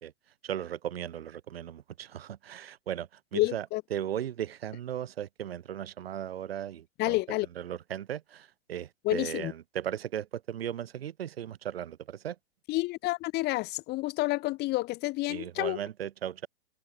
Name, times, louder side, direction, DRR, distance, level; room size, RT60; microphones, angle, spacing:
voice 1, 0.4-3.7 3.9-7.2 7.6-12.4 15.3-16.5, right 10 dB, 60° right, 2.6 m, -37 dB
voice 2, 3.3-3.8 7.0-7.5 9.0-9.5 12.7-15.8, left 20 dB, 30° left, 2.5 m, -29 dB
hypercardioid pair, 120°, 33 cm